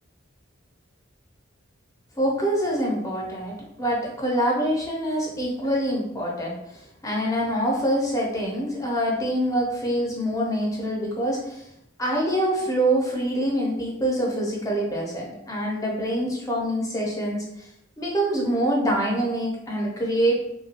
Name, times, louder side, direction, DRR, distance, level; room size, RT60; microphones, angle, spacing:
voice 1, 2.2-11.6 12.0-17.7 18.0-20.4, right 1 dB, 15° left, -2 dB, 0.6 m, -25 dB
2.9 x 2.2 x 2.8 m, 0.80 s
head